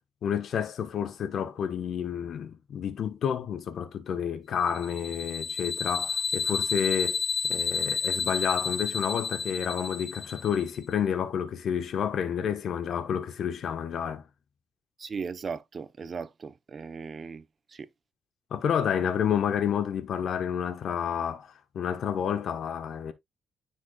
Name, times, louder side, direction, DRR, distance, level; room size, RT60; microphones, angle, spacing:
voice 1, 0.2-7.2 7.4-14.2 18.5-23.1, left 8 dB, 65° left, 1.2 m, -30 dB
sound 1, 4.7-10.7, left 5 dB, 45° left, 1.2 m, -31 dB
voice 2, 15.0-17.9, right 5 dB, 40° right, 0.9 m, -38 dB
10.0 x 4.8 x 2.4 m
cardioid pair, 90°, 0 cm